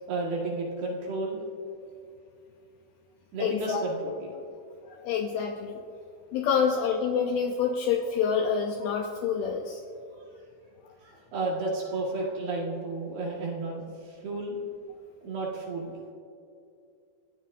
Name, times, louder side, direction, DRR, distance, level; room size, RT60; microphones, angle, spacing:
voice 1, 0.1-1.4 3.3-4.4 11.0-14.6 15.2-15.9, right 2 dB, 60° right, -3 dB, 3.6 m, -32 dB
voice 2, 3.4-3.8 4.9-5.8 6.3-9.8 10.8-10.9, left 6 dB, 85° left, 3 dB, 2.2 m, -27 dB
28.5 x 14.5 x 2.7 m, 2.5 s
omnidirectional pair, 5.5 m